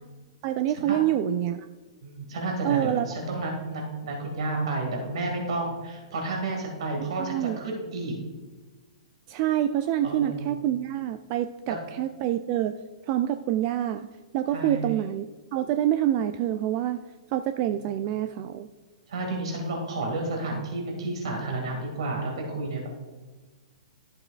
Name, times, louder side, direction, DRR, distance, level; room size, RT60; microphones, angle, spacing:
voice 1, 0.4-1.7 2.6-3.1 7.2-7.6 9.3-12.7 13.1-14.1 14.3-15.3 15.5-17.0 17.3-18.7, right 11 dB, 40° right, 10 dB, 0.3 m, -26 dB
voice 2, 2.0-8.1 10.0-10.6 11.7-11.8 14.5-14.9 17.7-17.9 19.1-22.9, right 2 dB, 65° right, 1 dB, 2.1 m, -31 dB
11.5 x 7.6 x 2.4 m, 1.3 s
hypercardioid pair, 120°, 3 cm